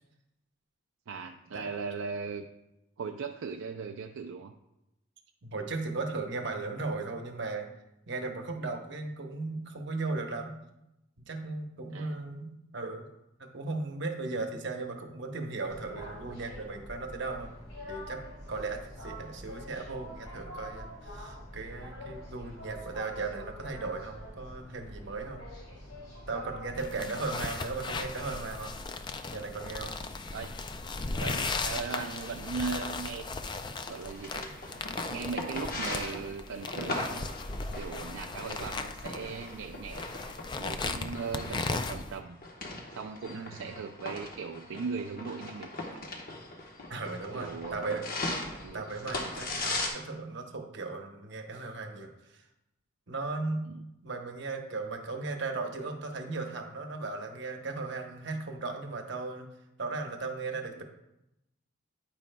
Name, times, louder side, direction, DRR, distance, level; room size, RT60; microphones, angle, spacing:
voice 1, 1.1-2.5 3.0-4.5 11.9-12.1 27.0-27.1 30.3-30.6 31.2-33.3 33.8-34.5 35.1-37.3 37.7-40.1 40.6-42.4 42.9-46.0 47.3-48.0 48.6-48.9 53.7-53.8, right 5 dB, 70° right, 5 dB, 0.4 m, -38 dB
voice 2, 5.4-7.7 8.1-10.6 11.2-13.1 13.4-17.5 17.9-18.2 18.5-25.4 26.3-28.8 29.3-29.9 43.3-43.7 46.9-48.5 48.7-52.4 53.1-53.7 54.0-59.5 59.8-60.8, right 3 dB, 55° right, 4 dB, 1.0 m, -37 dB
sound 1, 15.6-26.8, equal, 75° left, 3.0 m, -45 dB
sound 2, 26.8-42.2, left 3 dB, 20° left, 0.3 m, -37 dB
sound 3, 33.9-49.9, left 2 dB, 45° left, 1.1 m, -39 dB
9.5 x 9.0 x 2.2 m, 0.89 s
head